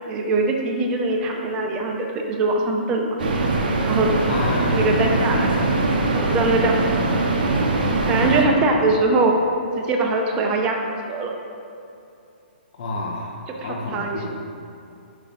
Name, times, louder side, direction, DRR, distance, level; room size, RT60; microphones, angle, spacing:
voice 1, 0.1-3.1 3.8-4.1 4.7-5.5 6.1-7.1 8.1-9.3 9.8-10.8 11.0-11.3 13.6-14.3, right 3 dB, 15° right, 1 dB, 0.5 m, -22 dB
sound 1, 3.2-8.4, right 2 dB, 60° right, 0.8 m, -21 dB
voice 2, 4.3-5.3 8.4-8.9 12.8-14.3, left 2 dB, 45° left, -2 dB, 0.9 m, -29 dB
5.9 x 4.8 x 4.1 m, 2.6 s
hypercardioid pair, 160°, 6 cm